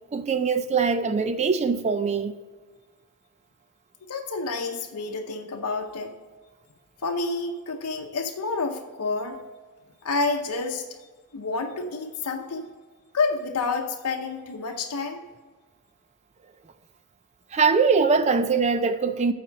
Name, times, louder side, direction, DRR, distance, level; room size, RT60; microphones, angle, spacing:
voice 1, 0.1-2.3 17.5-19.3, right 5 dB, 30° right, 0.4 m, -22 dB
voice 2, 4.1-6.2 7.0-9.4 10.0-10.9 11.3-12.7 13.1-15.2, left 3 dB, 90° left, 0.7 m, -29 dB
8.5 x 4.3 x 7.2 m
head